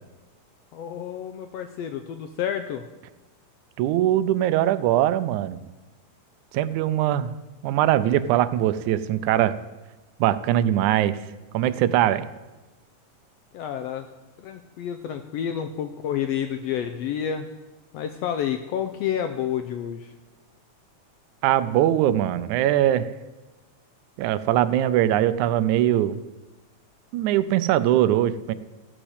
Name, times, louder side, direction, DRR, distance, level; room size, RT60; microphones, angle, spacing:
voice 1, 0.7-2.8 13.5-14.1 14.4-17.5 17.9-20.1, left 9 dB, 80° left, 7 dB, 1.5 m, -29 dB
voice 2, 3.8-5.6 6.5-7.3 7.6-9.6 10.2-11.2 11.5-12.3 21.4-23.1 24.2-26.2 27.1-28.5, right 12 dB, 80° right, 14 dB, 2.0 m, -21 dB
14.0 x 6.1 x 8.1 m, 1.1 s
omnidirectional pair, 3.4 m